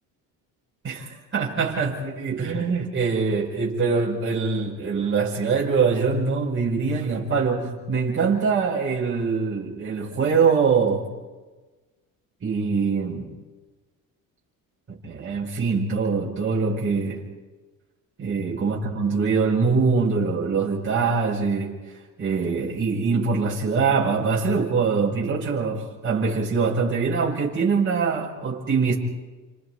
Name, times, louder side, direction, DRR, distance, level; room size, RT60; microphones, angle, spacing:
voice 1, 0.8-11.1 12.4-13.3 14.9-17.2 18.2-21.8 22.2-28.9, right 5 dB, 35° right, 5.2 m, -23 dB
30.0 x 26.5 x 4.7 m
cardioid pair, 120°, 36 cm